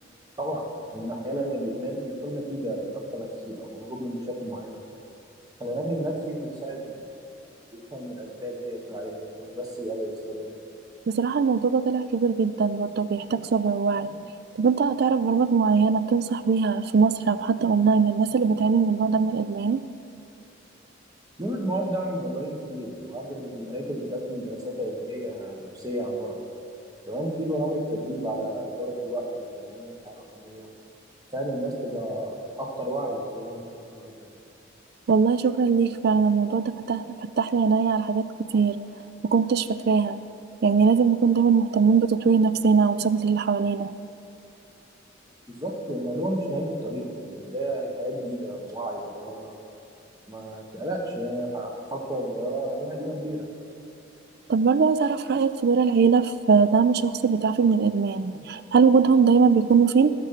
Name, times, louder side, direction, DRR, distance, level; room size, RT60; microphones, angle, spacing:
voice 1, 0.9-4.8 5.6-7.0 7.9-10.6 21.4-26.4 27.1-29.3 29.6-30.7 31.3-33.6 33.9-34.3 45.5-49.5 50.3-53.4, right 1 dB, 20° right, 0 dB, 1.2 m, -32 dB
voice 2, 11.1-14.2 14.6-19.8 35.1-38.8 39.2-40.2 40.6-43.9 54.5-60.1, right 5 dB, 55° right, 14 dB, 0.3 m, -21 dB
11.5 x 6.7 x 5.7 m, 2.8 s
head